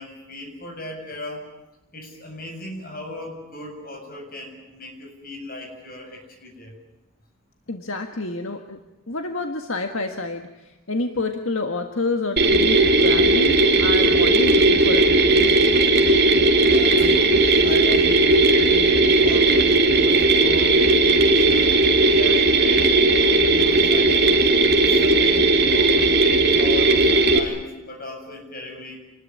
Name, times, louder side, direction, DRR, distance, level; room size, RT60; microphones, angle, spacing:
voice 1, 0.0-1.5 1.9-6.7 16.7-24.3 24.8-29.0, left 1 dB, 45° left, 2 dB, 7.9 m, -37 dB
voice 2, 7.7-8.8 9.1-15.9, left 2 dB, 70° left, 5 dB, 1.7 m, -29 dB
Mechanisms, 12.4-27.4, right 2 dB, 50° right, 2.9 m, -17 dB
28.0 x 21.0 x 9.9 m, 1.0 s
head